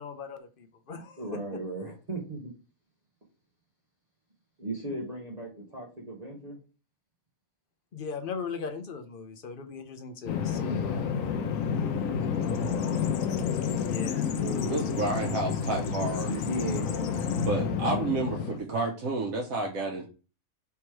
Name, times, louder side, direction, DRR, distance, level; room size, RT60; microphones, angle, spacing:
voice 1, 0.0-1.2 7.9-11.0 13.8-14.3, left 5 dB, 50° left, 0.7 m, -39 dB
voice 2, 1.2-2.5 4.6-6.6 10.4-12.9 14.3-17.3 18.1-18.7, right 2 dB, 30° right, 1.0 m, -39 dB
Bird vocalization bird call bird song, 10.3-18.6, left 6 dB, 75° left, 1.0 m, -29 dB
voice 3, 14.7-16.3 17.5-20.1, right 2 dB, 75° right, 1.2 m, -30 dB
3.5 x 3.0 x 4.6 m
omnidirectional pair, 1.4 m